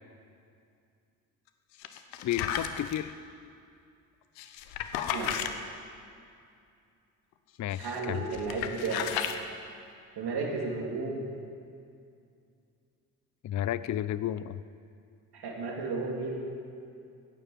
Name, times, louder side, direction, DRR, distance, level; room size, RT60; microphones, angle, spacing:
sound 1, 1.8-3.0 4.4-5.5 7.7-8.0 8.3-9.4, left 9 dB, 80° left, 1.0 m, -34 dB
voice 1, 2.2-3.1 7.6-8.3 13.4-14.6, left 12 dB, 40° left, 16 dB, 0.6 m, -32 dB
voice 2, 7.8-9.1 10.1-11.3 15.3-16.3, right 3 dB, 60° right, 0 dB, 3.3 m, -33 dB
14.5 x 9.8 x 7.6 m, 2.4 s
hypercardioid pair, 55°, 44 cm